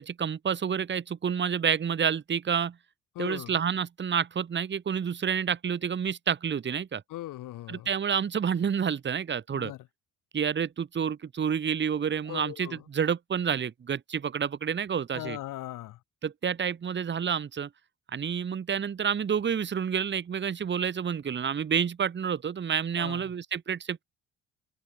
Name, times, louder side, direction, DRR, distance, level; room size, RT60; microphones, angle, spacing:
voice 1, 0.0-2.7 3.2-7.0 7.7-9.7 10.3-15.4 16.2-17.7 18.1-24.0, right 7 dB, 35° right, 1.2 m, -29 dB
voice 2, 3.1-3.6 7.1-7.9 9.5-9.9 12.3-12.8 15.1-16.0 23.0-23.3, left 15 dB, 70° left, 2.5 m, -39 dB
supercardioid pair, 65°, 33 cm